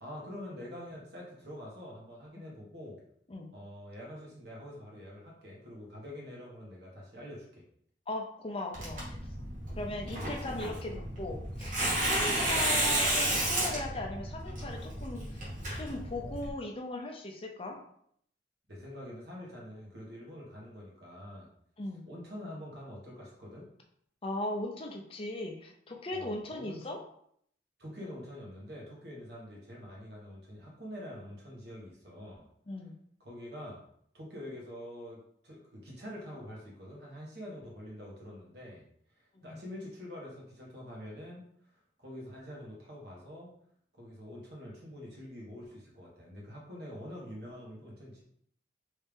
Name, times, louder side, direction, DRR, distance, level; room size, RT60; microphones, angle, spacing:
voice 1, 0.0-3.0 3.5-7.6 10.1-10.3 10.6-10.7 12.1-12.4 18.7-21.5 22.1-23.7 26.1-26.9 27.8-32.4 33.2-33.8 34.1-38.8 39.1-41.4 42.0-43.5 44.0-48.2, left 1 dB, 65° right, -3 dB, 1.2 m, -45 dB
voice 2, 8.1-9.2 9.8-11.7 12.1-15.5 15.8-17.8 21.8-22.0 24.2-27.0 32.7-32.9 39.3-39.6, left 2 dB, 30° left, 2 dB, 0.5 m, -38 dB
Tearing, 8.7-16.5, right 1 dB, 45° right, 1.2 m, -32 dB
3.2 x 2.7 x 3.5 m, 0.66 s
head